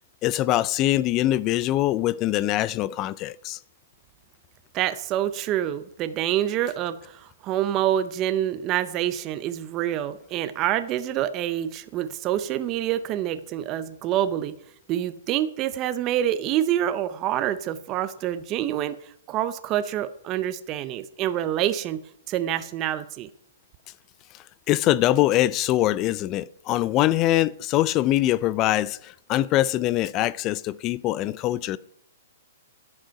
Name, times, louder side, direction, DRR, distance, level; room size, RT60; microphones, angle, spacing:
voice 1, 0.2-3.6 24.7-31.8, left 14 dB, 25° left, 0.4 m, -23 dB
voice 2, 4.7-14.5 14.9-19.0 19.3-23.3, right 11 dB, 25° right, 0.6 m, -27 dB
11.5 x 7.8 x 5.8 m
hypercardioid pair, 160°, 0 cm